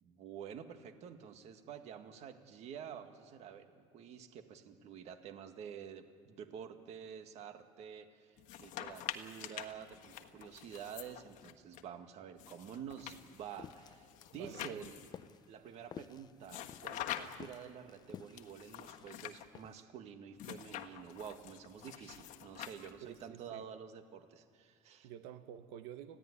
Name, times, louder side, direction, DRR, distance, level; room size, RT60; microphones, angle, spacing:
voice 1, 0.0-15.1 15.5-25.1, right 8 dB, 45° right, 7 dB, 1.8 m, -49 dB
sound 1, 8.4-11.8 12.4-15.3 16.4-17.6 18.4-19.5 20.4-23.2, left 11 dB, 55° left, 1.4 m, -46 dB
sound 2, 13.2-19.8, left 8 dB, 25° left, 0.5 m, -54 dB
voice 2, 14.3-14.9 23.0-23.6 25.0-26.2, right 10 dB, 85° right, 9 dB, 1.2 m, -50 dB
30.0 x 15.5 x 9.9 m, 2.2 s
cardioid pair, 165°, 15 cm